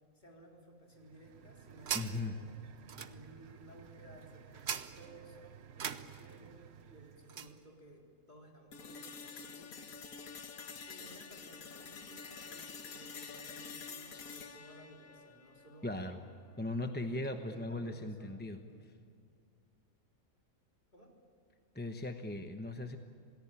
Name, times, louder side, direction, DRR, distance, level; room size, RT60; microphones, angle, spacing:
voice 1, 0.1-2.5 3.0-5.4 5.8-9.9 10.9-16.0 16.8-18.8 20.9-21.1, right 1 dB, 30° left, -1 dB, 4.2 m, -57 dB
sound 1, 1.0-7.6, right 7 dB, 55° right, 1.1 m, -44 dB
voice 2, 1.9-2.4 15.8-16.2 16.6-18.6 21.7-23.0, left 2 dB, 10° left, 5 dB, 0.8 m, -38 dB
sound 2, 8.7-16.7, left 5 dB, 80° left, 1.7 m, -48 dB
28.0 x 18.5 x 9.0 m, 2.3 s
omnidirectional pair, 1.5 m